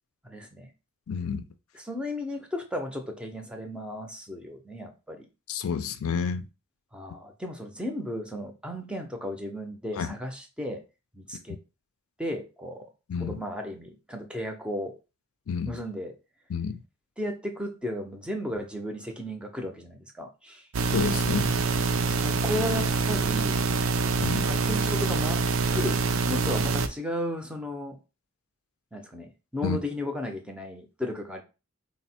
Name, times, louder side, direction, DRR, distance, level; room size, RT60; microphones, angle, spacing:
voice 1, 0.2-0.7 1.7-5.3 6.9-10.8 11.1-11.6 12.2-12.9 13.2-14.9 15.6-16.1 17.2-20.7 22.1-23.7 24.4-26.0 26.3-28.0 28.9-31.4, left 1 dB, 5° right, 0.5 m, -34 dB
voice 2, 1.1-1.4 5.5-6.5 10.0-10.2 13.1-13.4 15.5-15.8 16.5-16.8 20.9-21.5 24.2-24.5 29.6-29.8, left 6 dB, 75° left, 0.4 m, -29 dB
sound 1, 20.7-26.9, right 4 dB, 65° right, 0.4 m, -25 dB
4.1 x 2.0 x 4.2 m
head